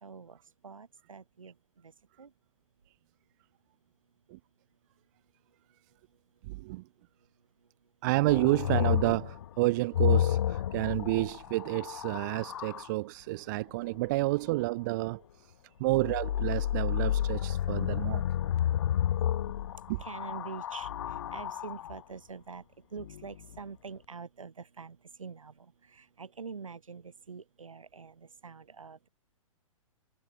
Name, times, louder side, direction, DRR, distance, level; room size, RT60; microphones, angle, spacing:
voice 1, 0.0-0.4 0.6-1.9 2.2-2.3 20.0-20.9 21.3-22.6 22.9-29.1, right 5 dB, 70° right, 4.1 m, -45 dB
voice 2, 6.5-6.8 8.0-15.2 15.8-18.2 19.9-20.0, right 21 dB, 35° right, 0.8 m, -30 dB
sound 1, 8.3-12.9 15.9-22.0 23.0-23.6, left 11 dB, 50° left, 1.3 m, -31 dB
figure-of-eight pair, 115°, 18 cm